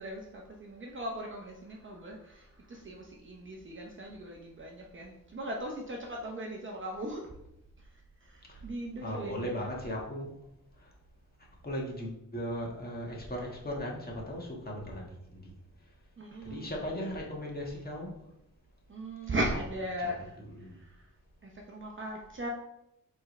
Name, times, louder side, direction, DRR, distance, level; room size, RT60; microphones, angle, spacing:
voice 1, 0.0-7.3 8.2-9.7 16.2-16.9 18.9-21.1 21.4-22.5, right 1 dB, 35° right, 0 dB, 0.8 m, -38 dB
voice 2, 9.0-10.3 11.6-15.4 16.4-18.1 20.0-20.1 20.4-20.8, equal, 25° left, -2 dB, 1.7 m, -37 dB
7.8 x 3.7 x 3.3 m, 0.83 s
wide cardioid pair, 115°, 34 cm